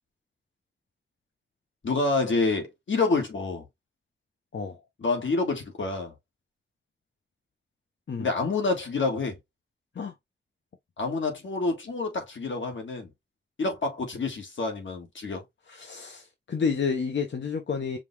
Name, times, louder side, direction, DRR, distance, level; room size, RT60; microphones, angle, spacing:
voice 1, 1.8-3.6 5.0-6.1 8.2-9.4 11.0-13.1 13.6-15.4, left 3 dB, 85° left, 1.7 m, -28 dB
voice 2, 15.7-18.0, left 5 dB, 70° left, 0.9 m, -30 dB
5.2 x 2.4 x 3.3 m
wide cardioid pair, 95°, 19 cm